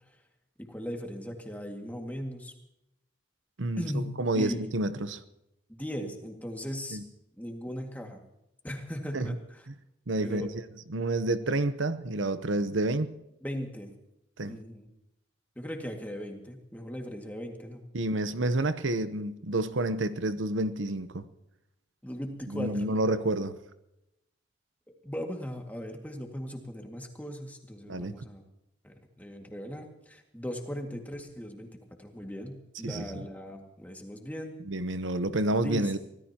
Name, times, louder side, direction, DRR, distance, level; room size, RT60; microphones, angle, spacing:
voice 1, 0.7-2.5 3.8-4.1 4.3-4.7 5.7-7.0 7.3-8.2 8.6-9.7 10.2-10.5 13.4-13.9 14.5-14.9 15.6-17.8 22.0-22.9 25.0-28.4 28.8-31.7 32.0-34.5 35.5-35.9, equal, 10° left, 2.0 m, -38 dB
voice 2, 3.6-5.2 6.9-7.0 9.1-9.3 9.7-9.8 10.1-10.5 10.9-13.1 14.4-14.6 17.9-21.2 22.5-23.6 27.9-28.1 32.8-33.2 34.7-36.0, right 2 dB, 90° right, 0.9 m, -29 dB
25.0 x 17.5 x 2.9 m
head